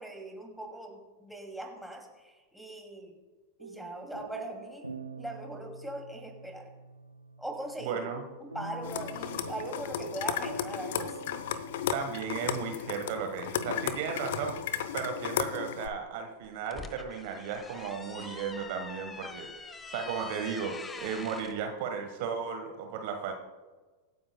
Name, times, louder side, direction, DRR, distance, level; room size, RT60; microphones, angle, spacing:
voice 1, 0.0-3.2 3.6-4.9 5.2-6.7 7.4-8.1 8.4-11.4, right 1 dB, ahead, 1 dB, 2.4 m, -41 dB
sound 1, 3.6-14.5, right 2 dB, 85° right, 0.7 m, -46 dB
voice 2, 7.8-8.2 11.9-19.5 19.9-23.3, right 6 dB, 50° right, 5 dB, 1.2 m, -35 dB
sound 2, 8.8-15.9, left 10 dB, 55° left, 0.7 m, -34 dB
sound 3, 16.4-21.6, left 4 dB, 15° left, 0.8 m, -44 dB
24.5 x 9.3 x 2.2 m, 1.3 s
figure-of-eight pair, 90°, 0 cm